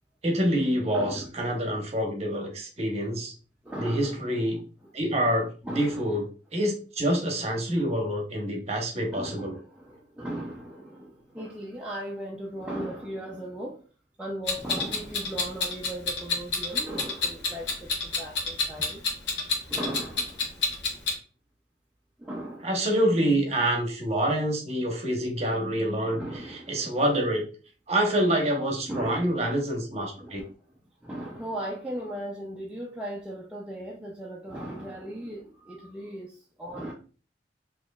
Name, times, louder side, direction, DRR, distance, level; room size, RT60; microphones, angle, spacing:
voice 1, 0.2-3.3 3.8-4.6 4.9-6.2 6.5-9.6 22.6-27.5 27.9-30.4, right 1 dB, 35° right, 0.9 m, -27 dB
voice 2, 0.9-1.6 3.6-4.4 5.6-6.0 9.1-13.8 14.2-19.0 19.7-20.6 22.2-22.7 26.1-26.9 28.8-29.3 30.2-30.5 31.0-36.9, right 1 dB, 5° right, 0.4 m, -37 dB
Clock, 14.5-21.2, left 4 dB, 75° left, 1.2 m, -28 dB
4.3 x 2.9 x 2.2 m
head